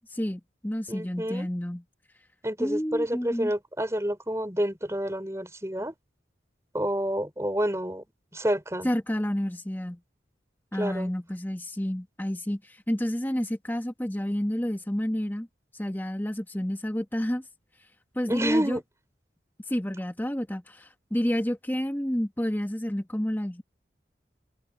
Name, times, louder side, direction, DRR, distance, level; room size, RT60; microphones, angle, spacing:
voice 1, 0.1-1.8 2.6-3.5 8.8-10.0 10.7-15.5 15.7-17.4 18.1-18.8 19.7-23.6, equal, 10° left, 1.2 m, -30 dB
voice 2, 0.9-1.5 2.4-5.9 6.7-8.0 8.3-8.9 10.7-11.1 18.3-18.8, equal, 15° right, 5.1 m, -29 dB
head